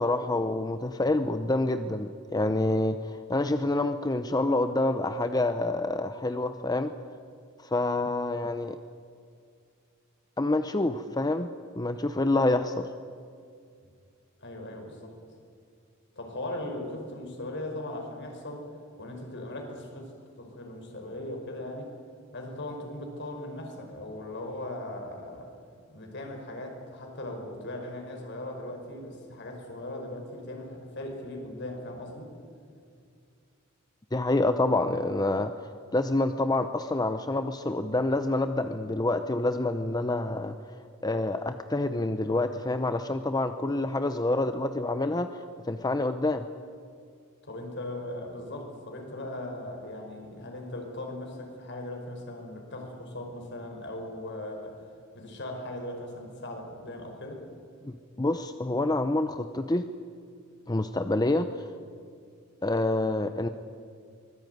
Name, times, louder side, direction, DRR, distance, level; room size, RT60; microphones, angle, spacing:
voice 1, 0.0-6.9 7.6-8.8 10.4-11.5 11.8-12.9 34.1-40.5 41.0-46.4 57.8-59.8 60.7-61.7 62.6-63.5, left 2 dB, 20° left, 9 dB, 0.7 m, -27 dB
voice 2, 14.4-15.1 16.2-18.7 19.0-21.9 22.3-25.5 25.9-32.3 47.4-54.8 55.1-57.5, left 1 dB, 60° left, 3 dB, 5.4 m, -39 dB
24.5 x 20.5 x 9.4 m, 2.3 s
head